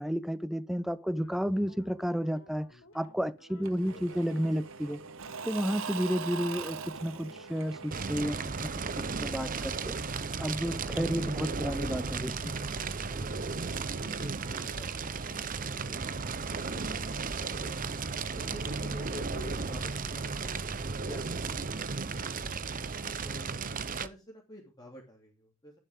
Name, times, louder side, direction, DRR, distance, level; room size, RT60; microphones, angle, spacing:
voice 1, 0.0-2.7 2.9-5.0 5.4-8.7 9.0-10.0 10.4-12.6, equal, ahead, 0.6 m, -32 dB
sound 1, 1.1-19.6, left 1 dB, 70° left, 3.0 m, -58 dB
voice 2, 3.5-4.2 13.7-17.8 18.2-23.5 23.9-25.7, equal, 20° left, 2.8 m, -50 dB
Engine / Mechanisms / Drill, 3.6-10.3, right 5 dB, 65° right, 1.0 m, -42 dB
Fire, 7.9-24.1, right 4 dB, 40° right, 0.8 m, -35 dB
11.5 x 10.0 x 3.7 m
head